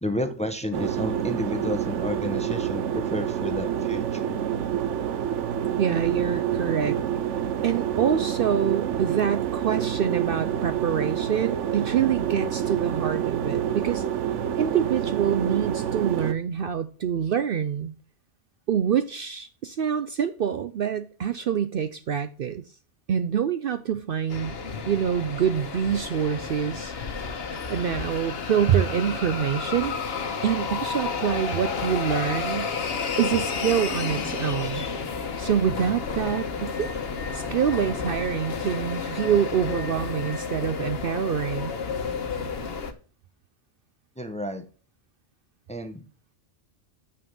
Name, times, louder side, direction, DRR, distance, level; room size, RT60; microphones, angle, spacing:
voice 1, 0.0-4.4 44.2-44.6 45.7-46.0, left 1 dB, 5° left, 0.7 m, -31 dB
sound 1, 0.7-16.3, right 9 dB, 90° right, 1.0 m, -28 dB
voice 2, 5.8-7.0 7.6-14.0 14.5-17.9 18.7-22.6 23.1-24.6 24.9-26.9 27.7-32.7 33.2-34.9 35.4-36.9 37.3-41.7, right 8 dB, 60° right, 0.7 m, -26 dB
sound 2, 24.3-42.9, left 5 dB, 60° left, 1.1 m, -31 dB
6.9 x 6.2 x 5.4 m
omnidirectional pair, 1.2 m